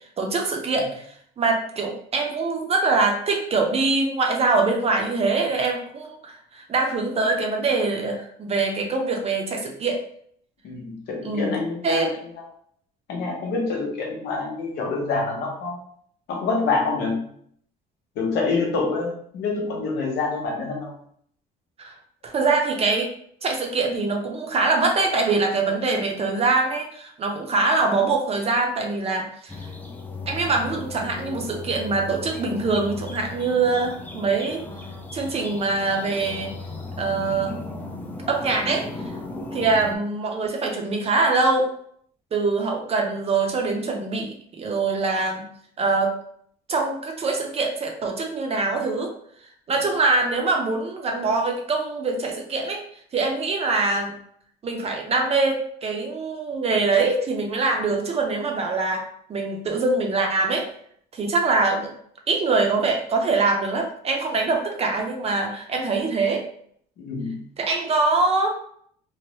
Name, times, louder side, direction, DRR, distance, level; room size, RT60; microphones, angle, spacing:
voice 1, 0.2-1.0 1.4-10.0 11.2-11.5 11.8-12.1 21.8-21.9 22.2-23.1 23.4-29.5 30.3-34.7 35.1-36.5 37.0-37.6 38.3-38.9 39.5-41.7 42.3-45.5 45.8-46.2 46.7-49.1 49.7-52.8 53.1-54.1 54.6-60.7 61.1-61.9 62.3-66.4 67.6-68.5, right 3 dB, 35° right, 2 dB, 0.6 m, -23 dB
voice 2, 10.6-12.3 13.1-15.8 16.3-17.3 18.2-20.9 39.3-39.6 67.0-67.5, left 3 dB, 80° left, 0 dB, 0.8 m, -27 dB
sound 1, 29.5-40.0, left 3 dB, 10° left, 0.4 m, -36 dB
3.1 x 2.0 x 3.0 m, 0.64 s
cardioid pair, 110°, 17 cm